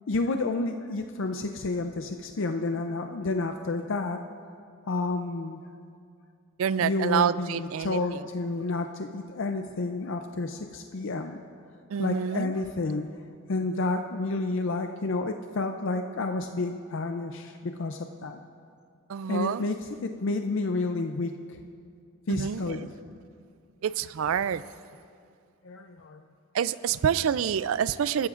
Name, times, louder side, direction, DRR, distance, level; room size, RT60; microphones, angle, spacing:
voice 1, 0.1-4.2 4.9-5.6 6.8-11.4 12.0-13.2 13.5-18.4 19.3-21.6 22.3-22.9 25.6-26.2, left 3 dB, 60° left, 5 dB, 0.5 m, -30 dB
voice 2, 6.6-8.0 11.9-12.5 19.1-19.6 22.3-22.6 23.8-24.6 26.5-28.3, right 8 dB, 70° right, 17 dB, 0.3 m, -27 dB
23.0 x 14.0 x 2.5 m, 2.3 s
head